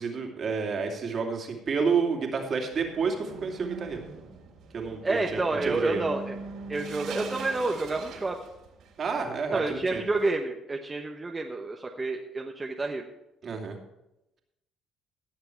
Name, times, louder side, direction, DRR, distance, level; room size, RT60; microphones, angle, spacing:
voice 1, 0.0-4.0 4.7-6.0 9.0-10.0 13.4-13.8, right 5 dB, 50° right, 2 dB, 2.6 m, -30 dB
sound 1, 2.7-10.3, right 4 dB, 75° right, 3.1 m, -42 dB
voice 2, 5.0-6.3 6.7-8.4 9.5-13.0, right 2 dB, 25° right, 2 dB, 1.1 m, -29 dB
17.5 x 6.8 x 4.6 m, 0.90 s
supercardioid pair, 75°, 0 cm